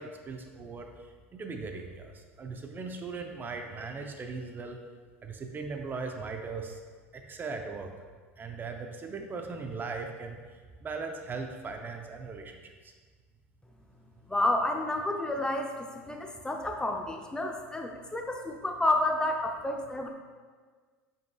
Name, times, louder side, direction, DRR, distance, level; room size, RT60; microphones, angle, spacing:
voice 1, 0.0-4.8 5.2-6.8 7.1-7.9 8.4-12.9, right 4 dB, 25° right, 4 dB, 0.7 m, -39 dB
voice 2, 14.3-20.1, left 1 dB, 10° left, 3 dB, 0.7 m, -30 dB
9.0 x 5.6 x 2.4 m, 1.5 s
hypercardioid pair, 80°, 8 cm